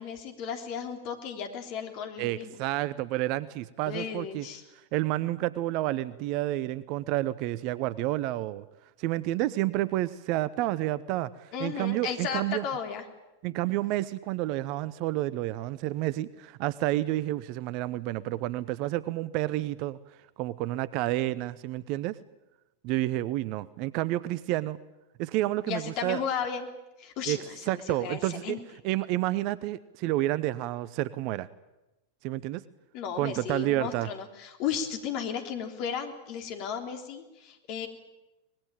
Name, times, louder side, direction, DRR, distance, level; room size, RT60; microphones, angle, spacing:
voice 1, 0.0-2.6 3.9-4.6 11.5-13.0 25.7-26.7 27.0-28.6 32.9-37.9, left 7 dB, 45° left, 6 dB, 3.5 m, -34 dB
voice 2, 2.2-4.5 4.9-8.6 9.0-12.6 13.4-20.0 20.4-22.2 22.8-24.8 25.2-26.2 27.3-27.4 27.7-28.6 28.8-31.5 32.2-32.6 33.2-34.1, right 16 dB, 45° right, 18 dB, 0.8 m, -30 dB
24.5 x 20.5 x 9.0 m, 1.0 s
figure-of-eight pair, 90°, 0 cm